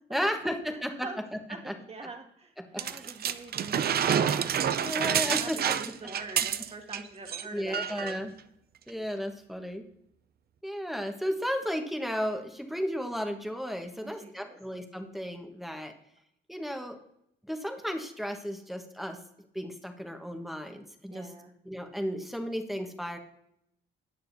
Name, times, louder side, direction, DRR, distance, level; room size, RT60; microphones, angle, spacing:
voice 1, 0.1-1.1 1.7-1.8 2.6-3.1 3.7-3.8 4.8-5.6 7.5-8.3 8.9-9.8 10.6-15.9 16.5-17.0 17.5-19.2 19.5-21.3 21.6-23.2, equal, ahead, 5 dB, 1.3 m, -34 dB
voice 2, 0.7-1.2 1.5-8.2 14.0-14.6 21.1-21.5, right 3 dB, 30° right, 3 dB, 1.9 m, -45 dB
sound 1, 2.8-7.0 7.3-7.4 7.7-8.2 8.9-9.0, right 8 dB, 50° right, 0.6 m, -28 dB
19.0 x 6.6 x 2.7 m, 0.76 s
cardioid pair, 90°, 20 cm